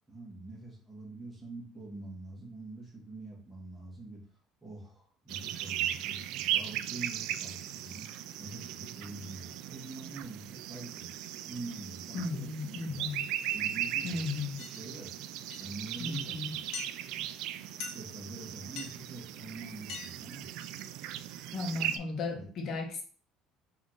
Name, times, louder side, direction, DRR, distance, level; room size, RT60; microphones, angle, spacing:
voice 1, 0.1-4.2 4.6-8.1 8.4-11.1 11.5-13.2 13.5-14.2 14.7-15.2 15.5-16.9 17.9-20.5 22.3-22.4, right 2 dB, 10° right, -3 dB, 1.6 m, -45 dB
sound 1, 5.3-22.0, right 11 dB, 75° right, 0.3 m, -37 dB
voice 2, 12.1-13.2 14.0-14.6 16.0-16.5 21.5-23.0, left 3 dB, 45° left, 1 dB, 1.2 m, -35 dB
sound 2, 14.6-14.8 15.5-15.7 16.7-16.9 17.8-18.1 18.8-18.9 19.9-20.1 20.4-20.8, left 5 dB, 65° left, 0.8 m, -41 dB
3.6 x 3.0 x 3.8 m, 0.42 s
cardioid pair, 130°, 0 cm